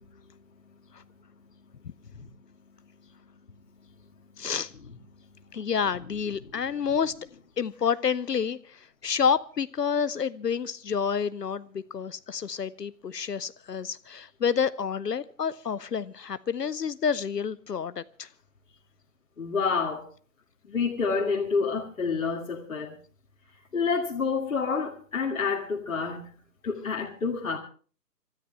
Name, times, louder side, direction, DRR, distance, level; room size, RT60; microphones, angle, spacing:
voice 1, 0.0-4.5 5.1-5.7 19.4-20.1 20.6-23.0 23.7-26.3 26.6-27.6, left 5 dB, 55° left, 2.1 m, -31 dB
voice 2, 4.4-4.7 5.5-7.1 7.6-18.3, left 6 dB, 70° left, 0.7 m, -29 dB
26.5 x 13.5 x 3.3 m
figure-of-eight pair, 140°, 49 cm